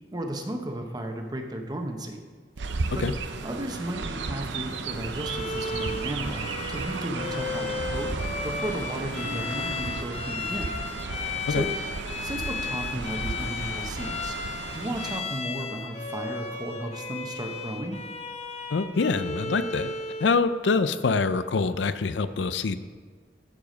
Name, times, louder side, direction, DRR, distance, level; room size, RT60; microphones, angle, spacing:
voice 1, 0.1-2.2 2.9-3.0 3.4-6.4 6.7-8.1 8.4-10.8 11.5-11.7 12.2-14.4 14.7-18.0, right 1 dB, 25° right, 4 dB, 1.0 m, -34 dB
Chirp tweet, 2.6-15.2, right 4 dB, 85° right, 0.6 m, -34 dB
Bowed string instrument, 5.2-20.4, left 4 dB, 35° left, 0.7 m, -35 dB
voice 2, 18.7-19.9 20.2-22.8, left 4 dB, 85° left, 12 dB, 0.5 m, -25 dB
14.0 x 4.9 x 5.1 m, 1.5 s
head